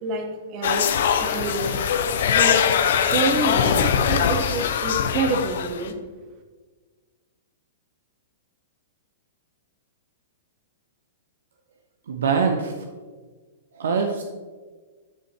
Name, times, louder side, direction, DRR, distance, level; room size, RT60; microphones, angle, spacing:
voice 1, 0.0-0.8 1.2-1.8 2.2-2.7 3.0-6.0, right 2 dB, 40° right, 5 dB, 1.2 m, -27 dB
sound 1, 0.6-5.9, left 7 dB, 65° left, 0.6 m, -22 dB
voice 2, 12.1-12.8 13.8-14.2, right 5 dB, 75° right, 4 dB, 0.6 m, -23 dB
10.0 x 5.0 x 3.0 m, 1.4 s
hypercardioid pair, 115°, 0 cm